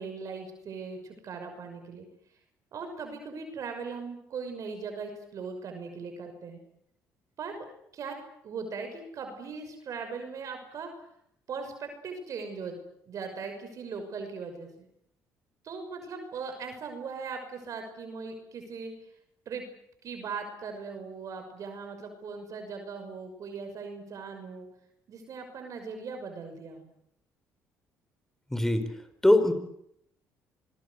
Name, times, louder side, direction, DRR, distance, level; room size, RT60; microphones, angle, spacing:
voice 1, 0.0-2.1 2.7-6.6 7.4-7.6 7.9-8.1 8.4-10.9 11.5-12.8 13.1-14.9 15.6-19.1 19.5-19.6 20.0-24.7 25.1-26.9, right 5 dB, 60° right, 6 dB, 6.1 m, -39 dB
voice 2, 28.5-29.0 29.2-29.5, left 1 dB, 5° left, 11 dB, 4.6 m, -22 dB
26.0 x 21.5 x 8.2 m, 0.72 s
supercardioid pair, 80°, 6 cm